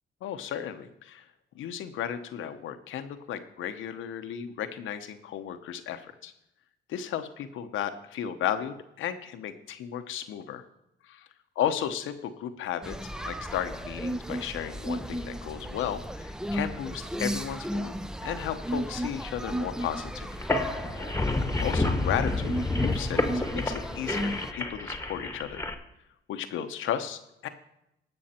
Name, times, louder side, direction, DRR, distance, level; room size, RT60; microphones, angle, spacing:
voice 1, 0.2-1.2 1.5-6.3 6.9-10.6 11.1-11.3 11.6-13.0 13.2-17.9 18.2-20.3 21.1-21.3 21.6-25.6 26.3-27.5, left 9 dB, 80° left, 9 dB, 1.0 m, -34 dB
sound 1, 12.8-24.5, equal, 5° right, 0.5 m, -35 dB
sound 2, 20.3-25.7, left 2 dB, 10° left, 1.3 m, -29 dB
18.0 x 6.4 x 4.4 m, 0.84 s
cardioid pair, 90°, 20 cm